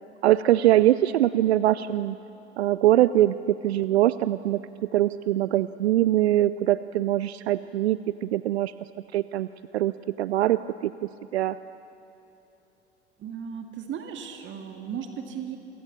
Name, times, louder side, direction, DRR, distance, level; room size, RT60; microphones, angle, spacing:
voice 1, 0.2-2.2 2.6-8.7 9.1-9.5 9.7-9.9 10.2-10.9 11.3-11.6, right 13 dB, 65° right, 16 dB, 0.5 m, -22 dB
voice 2, 13.2-15.6, right 7 dB, 35° right, 5 dB, 2.1 m, -36 dB
28.5 x 23.0 x 6.9 m, 2.9 s
figure-of-eight pair, 75°, 34 cm